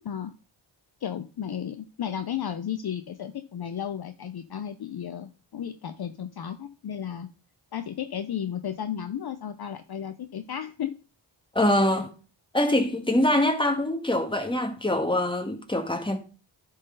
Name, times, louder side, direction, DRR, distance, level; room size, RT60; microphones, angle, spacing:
voice 1, 1.0-7.3 7.7-10.9, left 9 dB, 50° left, 0.7 m, -34 dB
voice 2, 11.6-12.1 12.5-16.2, left 1 dB, 10° left, 1.7 m, -24 dB
11.5 x 4.1 x 3.9 m
cardioid pair, 50°, 50 cm